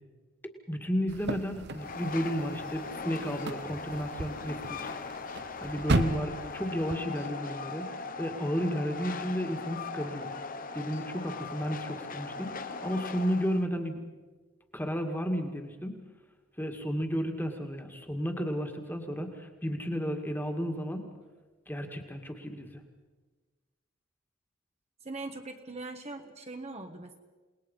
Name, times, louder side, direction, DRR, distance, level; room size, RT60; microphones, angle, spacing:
voice 1, 0.7-4.9 5.6-7.9 8.2-10.3 10.7-14.0 14.7-16.0 16.6-21.1 21.7-22.8, equal, 10° left, 4 dB, 2.0 m, -33 dB
sound 1, 1.1-7.0, right 2 dB, 50° right, 1.0 m, -35 dB
Train, 1.7-13.7, left 4 dB, 40° left, 1.1 m, -39 dB
voice 2, 25.0-27.2, right 2 dB, 30° right, 4 dB, 1.3 m, -41 dB
28.5 x 20.0 x 5.5 m, 1.3 s
head